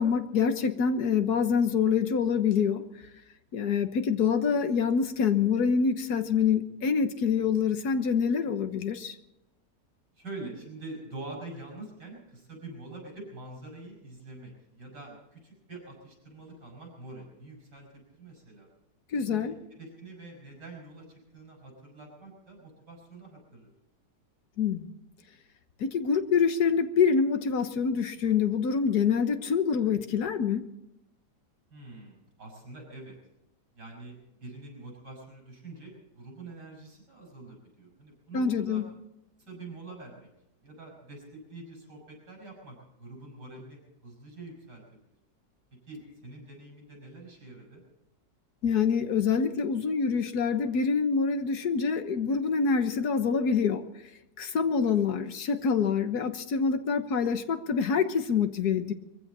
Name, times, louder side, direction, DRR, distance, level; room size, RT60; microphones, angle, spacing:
voice 1, 0.0-2.9 3.5-9.2 19.1-19.5 24.6-24.9 25.8-30.7 38.3-38.8 48.6-53.9 54.4-58.9, left 6 dB, 65° left, 1.6 m, -26 dB
voice 2, 10.2-18.7 19.3-23.7 31.7-33.2 33.8-38.8 39.5-40.3 40.6-45.0 45.7-47.8 54.8-55.0, right 2 dB, 75° right, 7.0 m, -45 dB
22.5 x 15.5 x 4.2 m
omnidirectional pair, 1.9 m